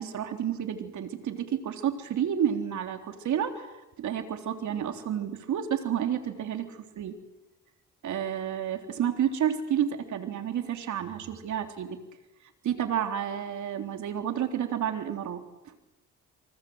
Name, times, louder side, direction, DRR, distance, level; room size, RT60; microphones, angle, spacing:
voice 1, 0.0-3.7 4.0-7.2 8.0-12.0 12.6-15.4, right 9 dB, 70° right, 6 dB, 3.5 m, -30 dB
27.5 x 25.0 x 8.0 m, 1.0 s
cardioid pair, 90°, 30 cm